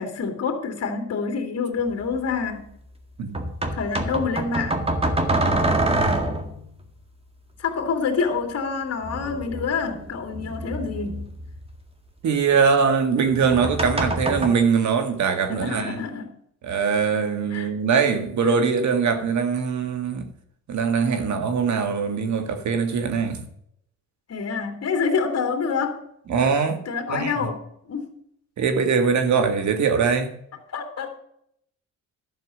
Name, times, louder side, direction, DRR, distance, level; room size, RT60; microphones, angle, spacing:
voice 1, 0.0-2.7 3.7-4.8 7.6-11.3 15.5-16.3 17.5-17.7 24.3-26.0 26.9-27.6 27.9-28.1 30.7-31.2, left 5 dB, 50° left, 2.6 m, -27 dB
sound 1, 1.9-2.0 3.3-6.7 9.0-11.7 13.3-14.5, right 1 dB, 20° right, 1.9 m, -25 dB
voice 2, 12.2-16.0 16.6-20.3 20.7-23.5 26.3-26.8 27.1-27.3 28.6-30.4, right 6 dB, 60° right, 1.9 m, -22 dB
12.0 x 6.7 x 6.3 m
cardioid pair, 100°, 32 cm